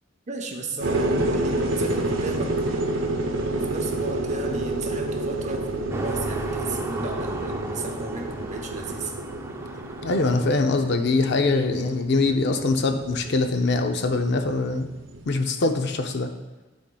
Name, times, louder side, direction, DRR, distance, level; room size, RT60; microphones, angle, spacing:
voice 1, 0.3-2.6 3.5-9.1, right 3 dB, 40° right, 3 dB, 0.7 m, -34 dB
sound 1, 0.8-15.3, right 2 dB, 80° right, 0.7 m, -29 dB
sound 2, 5.9-10.8, right 2 dB, 15° right, 0.4 m, -36 dB
voice 2, 10.0-14.9 15.3-16.3, left 3 dB, 60° left, 6 dB, 0.5 m, -23 dB
11.0 x 4.2 x 2.3 m, 1.2 s
head